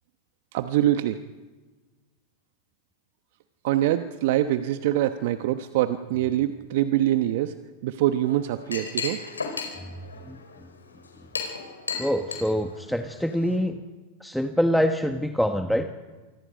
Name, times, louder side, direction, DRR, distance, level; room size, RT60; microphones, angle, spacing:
voice 1, 0.5-1.2 3.6-7.5 7.8-9.2, right 13 dB, 60° right, 10 dB, 1.0 m, -24 dB
Chink clink, 8.2-13.6, left 4 dB, 90° left, 4.5 m, -35 dB
voice 2, 12.0-13.8 14.2-15.9, equal, ahead, 6 dB, 1.4 m, -25 dB
28.0 x 24.5 x 5.2 m, 1.3 s
hypercardioid pair, 95°, 0 cm